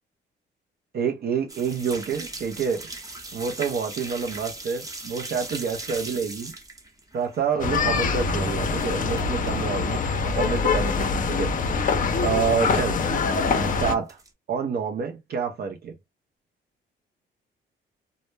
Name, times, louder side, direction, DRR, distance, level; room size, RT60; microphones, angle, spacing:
voice 1, 0.9-2.9 3.3-6.5 7.1-11.5 12.2-13.0 13.8-14.2 14.5-15.9, right 6 dB, 55° right, 0.5 m, -28 dB
sound 1, 1.5-9.5 9.8-10.6 10.9-11.0 11.4-11.5 11.7-11.9 12.7-13.2 13.6-14.3, right 2 dB, 15° right, 0.7 m, -39 dB
sound 2, 7.6-13.9, left 4 dB, 40° left, 0.5 m, -24 dB
2.1 x 2.0 x 3.1 m
cardioid pair, 90°, 20 cm